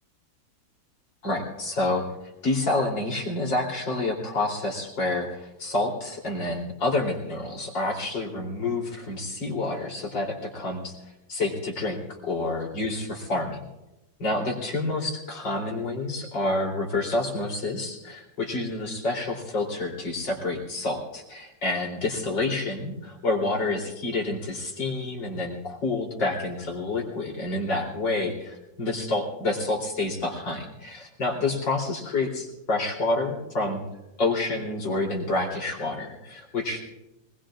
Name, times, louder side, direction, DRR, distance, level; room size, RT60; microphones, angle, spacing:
voice 1, 1.2-2.0 2.4-10.9 11.3-13.6 14.2-33.8 34.2-36.8, left 2 dB, 90° left, -1 dB, 4.3 m, -28 dB
24.0 x 21.0 x 2.5 m, 0.94 s
omnidirectional pair, 1.9 m